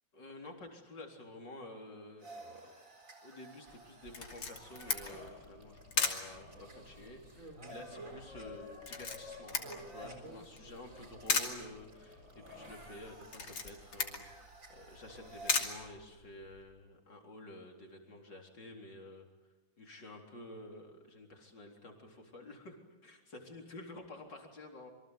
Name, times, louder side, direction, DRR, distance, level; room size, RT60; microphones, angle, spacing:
voice 1, 0.1-2.5 3.2-9.6 9.9-19.3 19.8-24.9, left 1 dB, 60° left, 2 dB, 4.6 m, -51 dB
sound 1, 2.2-15.5, equal, 40° right, 4.6 m, -52 dB
Camera, 4.1-16.6, left 4 dB, 85° left, 3.6 m, -39 dB
27.5 x 24.5 x 8.1 m, 1.1 s
omnidirectional pair, 2.2 m